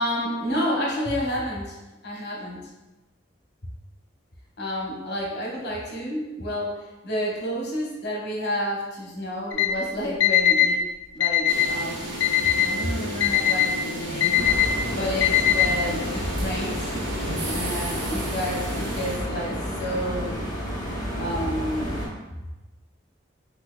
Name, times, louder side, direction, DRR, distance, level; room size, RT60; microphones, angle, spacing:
voice 1, 0.0-1.8 2.0-2.6 4.6-10.8 11.1-12.0 12.6-14.5 14.9-16.9 17.4-20.4 21.2-22.0, equal, 60° left, -3 dB, 0.9 m, -30 dB
Alarm, 9.5-9.7 10.2-10.7 11.2-11.7 12.2-12.7 13.2-13.7 14.2-14.7 15.2-15.7, left 12 dB, 85° left, 0.4 m, -20 dB
sound 1, 11.5-19.2, equal, 80° right, 0.6 m, -33 dB
sound 2, 14.3-22.1, equal, 20° left, 0.8 m, -31 dB
4.1 x 2.6 x 2.2 m, 1.1 s
head